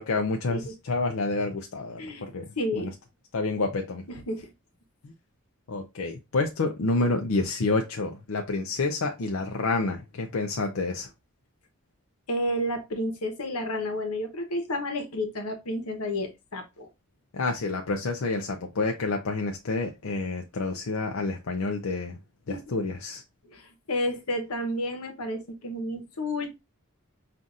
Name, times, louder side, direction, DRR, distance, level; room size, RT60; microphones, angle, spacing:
voice 1, 0.0-2.9 3.3-4.0 5.0-5.1 5.7-11.1 17.3-22.2 22.5-23.2, left 3 dB, 65° left, 0.5 m, -29 dB
voice 2, 2.6-2.9 4.1-4.5 12.3-16.9 22.5-22.8 23.5-26.6, left 1 dB, 85° left, 1.0 m, -31 dB
5.6 x 2.5 x 2.5 m
head